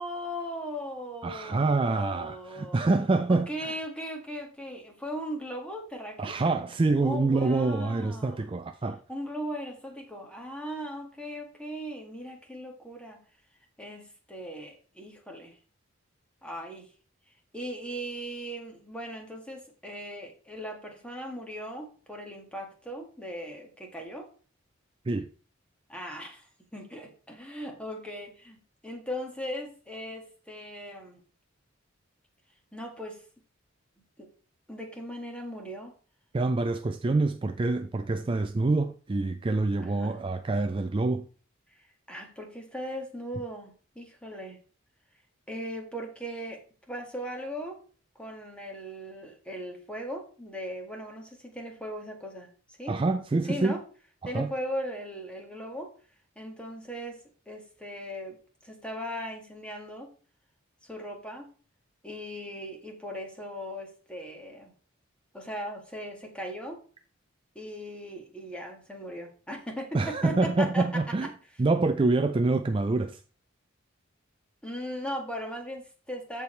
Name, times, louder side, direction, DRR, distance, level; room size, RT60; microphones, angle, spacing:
voice 1, 0.0-2.8 3.3-6.4 7.0-8.5 9.1-13.2 13.8-15.6 16.4-16.9 17.5-24.3 25.9-31.2 32.7-33.2 34.2-34.3 34.7-35.9 39.8-40.2 42.1-44.6 45.5-46.6 46.9-47.8 48.2-53.0 53.4-53.8 54.2-55.9 56.4-60.1 60.8-61.5 62.0-64.7 65.3-66.8 67.6-71.1 74.6-76.4, equal, 5° left, 1.8 m, -38 dB
voice 2, 1.2-3.7 6.2-9.0 25.1-25.3 36.3-41.2 52.9-53.8 54.2-54.5 69.9-71.3 71.6-73.2, right 3 dB, 25° right, 0.4 m, -26 dB
14.0 x 4.7 x 3.2 m
head